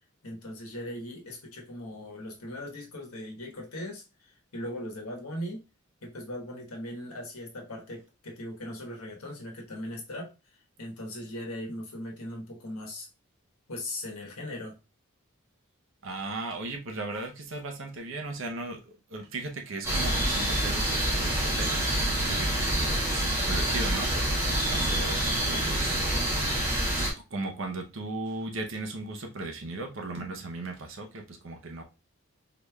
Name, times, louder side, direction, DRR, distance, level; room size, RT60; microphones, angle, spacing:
voice 1, 0.2-5.6 6.0-13.1 13.7-14.8, left 1 dB, 80° left, 1.2 m, -39 dB
voice 2, 16.0-26.7 27.3-31.8, right 2 dB, 60° right, 0.7 m, -37 dB
The creek in the shadow of the cliffs, 19.8-27.1, right 1 dB, 15° right, 1.3 m, -27 dB
3.9 x 3.2 x 2.3 m
head